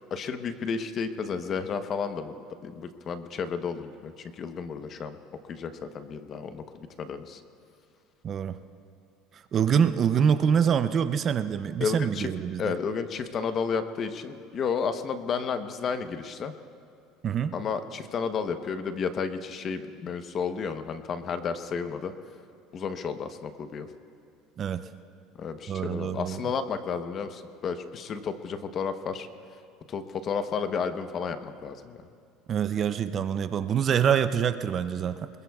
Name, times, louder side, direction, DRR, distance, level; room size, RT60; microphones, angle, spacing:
voice 1, 0.1-2.4 2.6-5.2 5.5-7.4 11.8-12.3 12.6-16.5 17.5-22.1 22.7-23.9 25.4-29.3 29.9-32.0, left 6 dB, 35° left, 8 dB, 0.9 m, -32 dB
voice 2, 8.2-8.6 9.5-12.7 17.2-17.5 24.6-24.9 25.7-26.4 32.5-35.3, right 8 dB, 35° right, 11 dB, 0.5 m, -25 dB
26.0 x 21.5 x 2.4 m, 2.4 s
cardioid pair, 135°, 0 cm